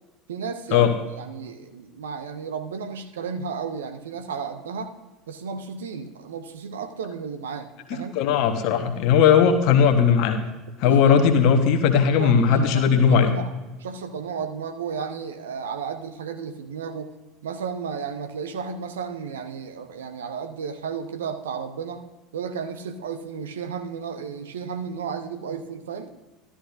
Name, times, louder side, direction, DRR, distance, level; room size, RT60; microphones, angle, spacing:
voice 1, 0.3-4.9 5.3-8.2 10.8-11.2 12.1-13.5 13.8-17.1 17.4-22.0 22.3-26.1, right 6 dB, 70° right, 7 dB, 0.8 m, -33 dB
voice 2, 7.9-10.4 10.8-13.3, left 7 dB, 50° left, 6 dB, 1.1 m, -18 dB
12.5 x 12.5 x 2.6 m, 1.1 s
figure-of-eight pair, 70°, 0 cm